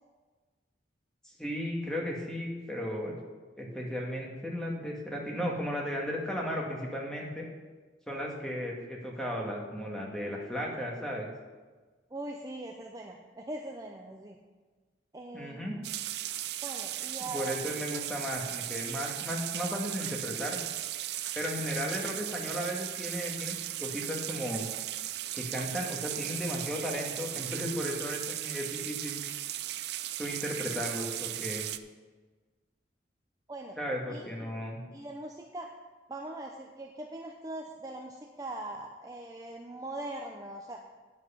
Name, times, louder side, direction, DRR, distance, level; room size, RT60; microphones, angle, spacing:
voice 1, 1.2-3.2 3.6-7.5 8.1-11.3 15.3-15.7 17.2-20.6 21.4-24.7 25.3-29.2 30.2-31.7 33.8-34.8, equal, 5° left, -2 dB, 1.8 m, -35 dB
voice 2, 12.1-14.4 15.1-15.8 16.6-17.7 33.5-33.8 34.1-35.7 36.1-40.8, right 1 dB, 20° right, 1 dB, 0.6 m, -41 dB
sound 1, 15.8-31.8, right 13 dB, 65° right, 0.4 m, -37 dB
9.5 x 7.6 x 5.7 m, 1.3 s
head